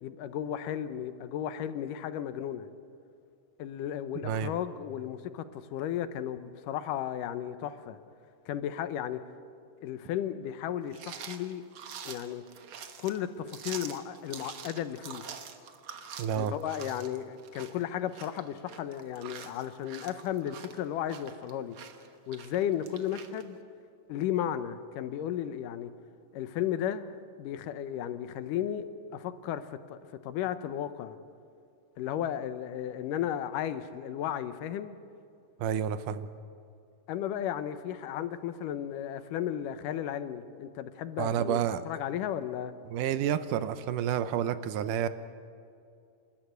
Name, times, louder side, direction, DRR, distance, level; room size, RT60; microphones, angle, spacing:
voice 1, 0.0-2.7 3.6-8.0 8.5-9.2 9.8-11.6 12.1-12.4 13.0-15.2 16.4-21.8 22.3-23.6 24.1-25.9 26.3-27.1 27.4-28.9 29.1-31.2 32.0-35.0 37.1-42.7, left 10 dB, 80° left, 11 dB, 2.5 m, -34 dB
sound 1, 10.9-23.4, right 7 dB, 55° right, 1.6 m, -46 dB
voice 2, 16.2-16.6 35.6-36.3 41.2-41.8 42.9-45.1, right 9 dB, 80° right, 12 dB, 2.3 m, -29 dB
27.5 x 13.5 x 9.5 m, 2.5 s
omnidirectional pair, 3.8 m